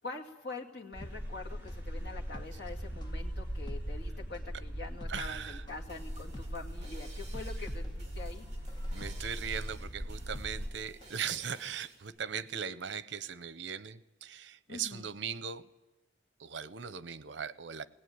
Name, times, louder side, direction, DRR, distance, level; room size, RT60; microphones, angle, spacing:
voice 1, 0.0-8.5 14.7-15.1, left 3 dB, 65° left, 1 dB, 2.5 m, -45 dB
sound 1, 0.9-10.7, equal, 10° right, 4.4 m, -40 dB
sound 2, 1.0-11.2 11.5-11.6, equal, 25° left, 1.3 m, -51 dB
voice 2, 5.1-5.6 8.9-15.6 16.4-17.9, right 7 dB, 85° right, 16 dB, 0.7 m, -39 dB
sound 3, 5.7-12.1, right 3 dB, 40° right, 5.1 m, -56 dB
18.5 x 18.5 x 9.5 m, 1.0 s
head